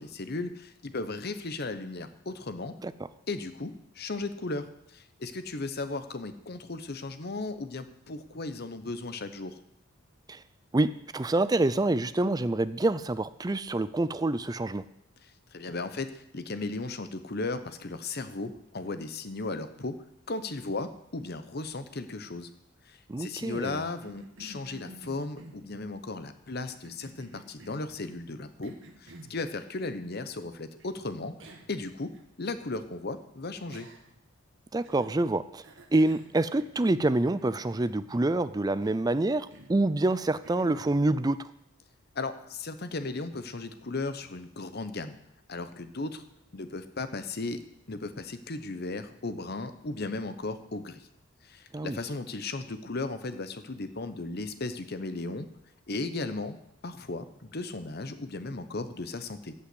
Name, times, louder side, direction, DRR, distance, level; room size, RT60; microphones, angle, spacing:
voice 1, 0.0-2.7 3.3-9.6 15.5-20.0 20.3-22.5 22.9-28.7 29.0-31.3 31.7-32.1 32.4-33.9 42.1-45.2 45.5-46.2 46.5-47.6 47.9-51.0 51.4-55.5 55.9-56.6 56.8-59.5, left 3 dB, 50° left, 11 dB, 0.9 m, -36 dB
voice 2, 10.7-14.8 23.1-23.8 34.7-35.6 35.9-41.5 51.7-52.0, right 2 dB, 20° right, 14 dB, 0.4 m, -27 dB
Cough, 23.8-25.9 26.7-27.9 28.6-29.4 30.8-30.9 31.4-31.8 32.1-32.2 33.7-34.3 34.8-35.2 35.6-37.1 37.4-38.4 38.8-39.1 39.5-39.8 40.4-40.9, right 1 dB, 60° right, 1.5 m, -51 dB
15.0 x 5.8 x 7.9 m, 0.77 s
head